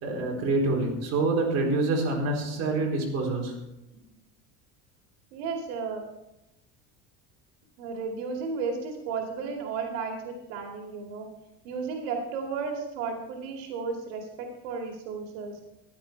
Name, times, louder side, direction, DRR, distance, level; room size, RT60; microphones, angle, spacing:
voice 1, 0.0-3.5, right 2 dB, 45° right, -1 dB, 4.1 m, -26 dB
voice 2, 5.3-6.0 7.8-11.3 11.6-15.6, right 5 dB, 90° right, 1 dB, 2.4 m, -33 dB
15.0 x 11.0 x 4.5 m, 0.91 s
cardioid pair, 145°, 35 cm